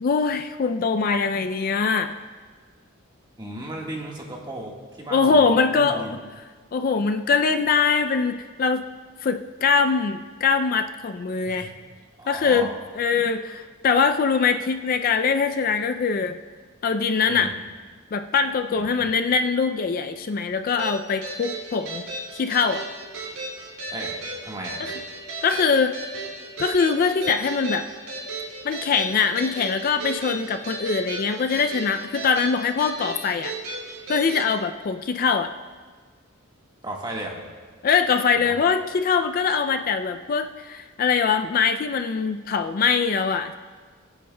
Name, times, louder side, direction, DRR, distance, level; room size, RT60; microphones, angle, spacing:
voice 1, 0.0-2.1 5.1-6.1 6.7-8.8 9.2-11.7 12.3-12.7 13.0-16.4 16.8-17.5 18.1-22.1 22.3-22.8 25.4-25.9 26.6-27.9 28.6-33.5 34.1-35.5 37.8-43.6, left 5 dB, 40° left, 8 dB, 0.3 m, -22 dB
voice 2, 3.4-6.1 11.5-11.7 12.2-12.7 17.3-17.5 18.8-19.1 23.9-24.2 24.4-24.8 36.8-37.4 38.4-38.6, right 1 dB, 20° right, -1 dB, 1.5 m, -35 dB
sound 1, 20.8-34.5, right 2 dB, 85° right, 3.2 m, -34 dB
21.5 x 9.1 x 2.2 m, 1.5 s
head